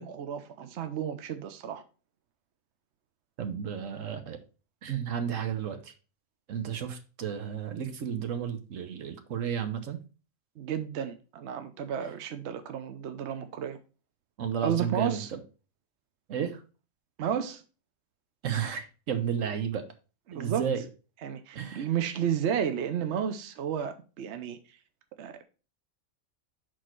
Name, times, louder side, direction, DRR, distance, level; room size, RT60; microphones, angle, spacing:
voice 1, 0.0-1.8 10.6-13.8 14.6-15.3 17.2-17.6 20.3-20.6 21.2-24.6 25.2-25.4, right 8 dB, 65° right, 1.0 m, -32 dB
voice 2, 3.4-4.4 4.8-5.9 6.5-10.0 14.4-15.4 16.3-16.6 18.4-19.9 20.3-20.8 21.5-21.9, right 8 dB, 90° right, 1.3 m, -32 dB
6.4 x 4.3 x 4.5 m
omnidirectional pair, 1.3 m